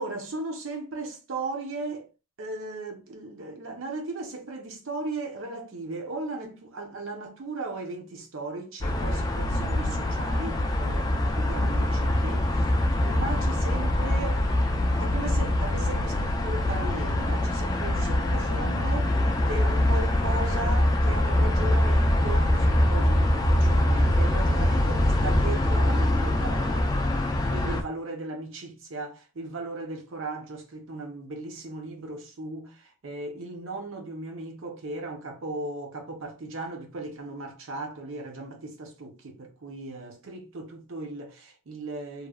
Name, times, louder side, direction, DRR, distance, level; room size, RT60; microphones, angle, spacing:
voice 1, 0.0-2.1 2.4-12.8 13.0-14.5 15.0-26.9 27.5-42.3, right 2 dB, 65° right, 0.6 m, -37 dB
sound 1, 8.8-27.8, left 1 dB, 15° left, 0.3 m, -24 dB
3.0 x 2.2 x 2.3 m
head